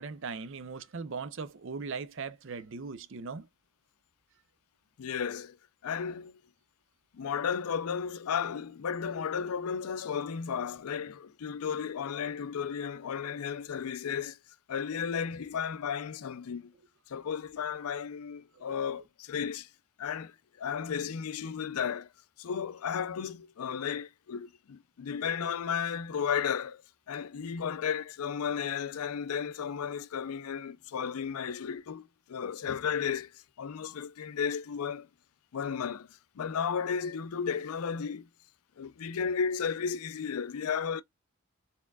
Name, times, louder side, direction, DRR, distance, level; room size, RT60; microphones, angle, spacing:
voice 1, 0.0-3.5 18.5-18.8, right 4 dB, 55° right, 0.5 m, -39 dB
voice 2, 5.0-5.6 5.8-6.4 7.1-14.4 14.7-16.7 17.1-19.7 20.0-22.1 22.4-26.8 27.1-35.1 35.5-38.3 38.8-41.0, left 7 dB, 80° left, 0.4 m, -34 dB
4.3 x 3.5 x 2.2 m
head